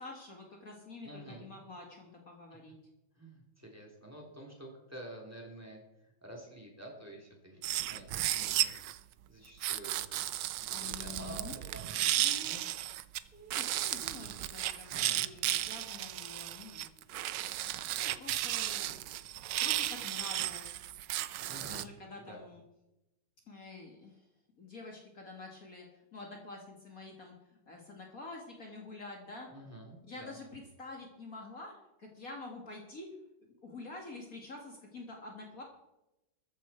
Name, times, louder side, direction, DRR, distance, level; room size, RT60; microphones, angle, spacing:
voice 1, 0.0-2.8 10.7-11.8 12.2-12.5 13.3-16.9 17.9-19.0 19.6-20.8 21.6-22.6 23.5-24.2 24.6-25.9 26.1-29.5 30.1-31.7 32.0-33.1 33.6-35.6, left 3 dB, 45° left, 1 dB, 2.3 m, -47 dB
voice 2, 1.0-1.5 3.1-8.7 9.3-12.0 12.4-12.6 14.9-15.2 21.4-21.9 22.3-22.4 29.5-30.3, right 1 dB, 5° right, 0 dB, 3.4 m, -49 dB
sound 1, 7.6-9.0 9.6-13.2 13.5-21.8, right 13 dB, 70° right, 1.2 m, -34 dB
14.0 x 14.0 x 4.5 m, 0.92 s
omnidirectional pair, 2.1 m